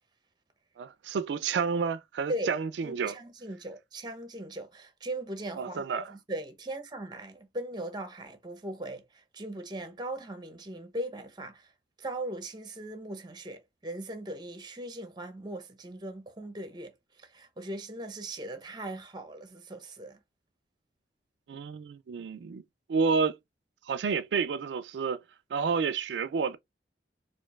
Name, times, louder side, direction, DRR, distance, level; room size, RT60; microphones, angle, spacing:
voice 1, 0.8-3.2 5.6-6.1 21.5-22.6 22.9-23.4 23.9-25.2 25.5-26.6, right 5 dB, 85° right, 0.4 m, -30 dB
voice 2, 2.8-11.7 12.0-16.9 17.2-20.2, right 1 dB, 25° right, 0.7 m, -39 dB
4.4 x 2.4 x 2.3 m
head